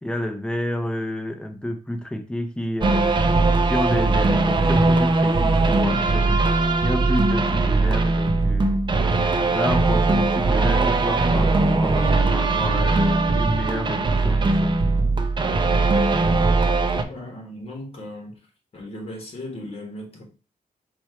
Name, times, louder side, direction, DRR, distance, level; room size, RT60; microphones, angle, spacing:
voice 1, 0.0-3.1 3.7-6.4 6.8-8.8 9.5-14.8, left 1 dB, 5° left, 5 dB, 0.6 m, -29 dB
sound 1, 2.8-17.0, right 3 dB, 30° right, 0.5 m, -20 dB
voice 2, 16.9-18.4 18.7-20.2, left 1 dB, 40° left, 1 dB, 1.4 m, -37 dB
4.3 x 2.4 x 4.4 m, 0.34 s
wide cardioid pair, 130°, 15 cm